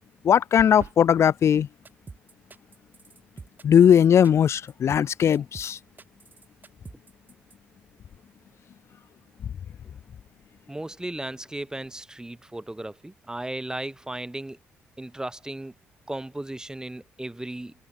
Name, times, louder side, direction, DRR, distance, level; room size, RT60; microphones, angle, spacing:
voice 1, 0.2-1.7 3.6-5.8, left 8 dB, 50° left, 0.6 m, -19 dB
sound 1, 0.6-1.0, right 7 dB, 50° right, 1.2 m, -39 dB
sound 2, 1.8-7.6, right 4 dB, 35° right, 6.7 m, -46 dB
voice 2, 10.7-14.6 15.0-15.7 16.1-17.7, right 1 dB, 10° right, 2.1 m, -35 dB
hypercardioid pair, 45°, 6 cm